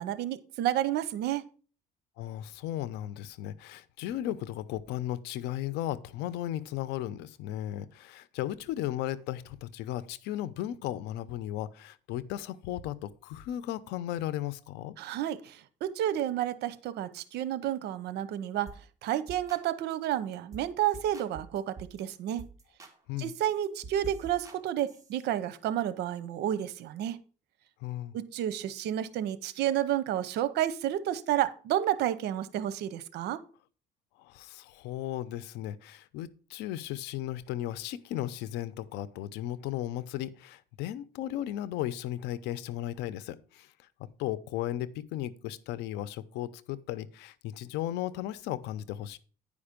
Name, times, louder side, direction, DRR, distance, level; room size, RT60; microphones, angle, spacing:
voice 1, 0.0-1.5 15.0-18.7 19.0-22.4 23.2-27.2 28.1-33.4, right 11 dB, 80° right, 0.8 m, -31 dB
voice 2, 2.2-14.9 23.1-23.3 27.8-28.1 34.2-43.7 44.0-49.2, left 13 dB, 90° left, 0.7 m, -35 dB
sound 1, 18.7-18.8 19.1-19.6 19.9-20.1 20.5-20.7 20.9-22.0 22.4-22.9 23.2-25.2, right 4 dB, 20° right, 1.7 m, -47 dB
9.7 x 5.2 x 5.1 m
cardioid pair, 110°, 17 cm